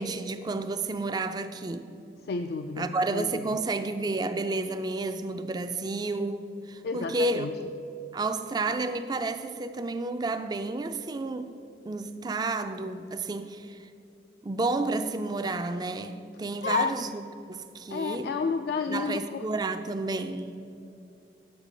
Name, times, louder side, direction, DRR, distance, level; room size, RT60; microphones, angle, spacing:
voice 1, 0.0-1.9 2.8-7.5 8.1-11.6 11.9-13.9 14.4-17.2 17.5-18.4 18.9-20.6, right 3 dB, 25° right, 9 dB, 0.3 m, -31 dB
voice 2, 2.3-3.4 6.8-7.5 16.6-16.9 17.9-19.4, left 4 dB, 60° left, 6 dB, 0.3 m, -31 dB
8.2 x 6.8 x 5.1 m, 2.6 s
head